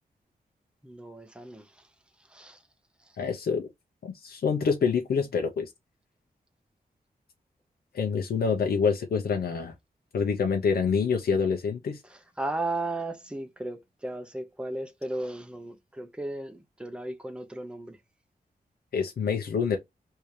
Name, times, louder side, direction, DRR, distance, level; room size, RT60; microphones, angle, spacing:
voice 1, 0.8-1.7 2.3-2.6 12.4-18.0, right 2 dB, 5° right, 0.7 m, -35 dB
voice 2, 3.2-3.7 4.0-5.7 7.9-9.7 10.1-12.0 18.9-19.8, left 6 dB, 70° left, 0.7 m, -26 dB
3.4 x 2.8 x 3.1 m
wide cardioid pair, 135°, 16 cm